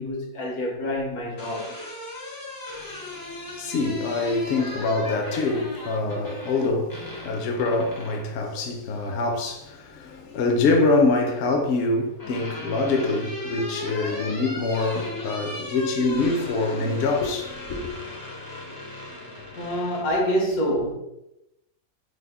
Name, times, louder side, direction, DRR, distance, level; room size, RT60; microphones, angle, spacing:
voice 1, 0.0-1.7 19.5-20.9, equal, 90° left, 1.4 m, -26 dB
sound 1, 1.1-8.3 9.8-10.5 11.7-20.2, left 2 dB, 35° left, 0.3 m, -37 dB
voice 2, 3.6-17.9, left 3 dB, 65° left, 0.7 m, -25 dB
3.3 x 2.0 x 3.4 m
omnidirectional pair, 1.5 m